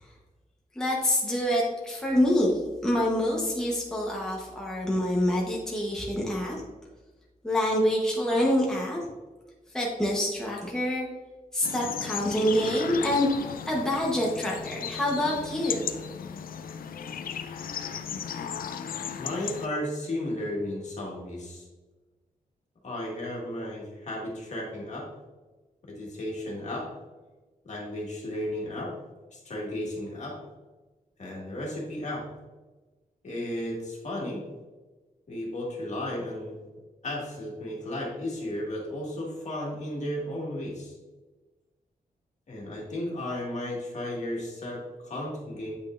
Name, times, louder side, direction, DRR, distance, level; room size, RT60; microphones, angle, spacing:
voice 1, 0.8-6.6 7.4-9.1 9.7-11.1 11.5-15.8, left 1 dB, 5° left, -3 dB, 1.0 m, -26 dB
sound 1, 11.6-19.7, left 7 dB, 75° left, 0.4 m, -36 dB
voice 2, 19.2-21.7 22.8-25.1 25.8-26.9 27.6-28.9 29.3-30.4 31.2-32.3 33.2-34.4 35.3-36.6 37.0-40.9 42.5-45.8, left 1 dB, 50° left, -3 dB, 1.8 m, -34 dB
8.4 x 5.4 x 2.5 m, 1.2 s
wide cardioid pair, 155°, 15 cm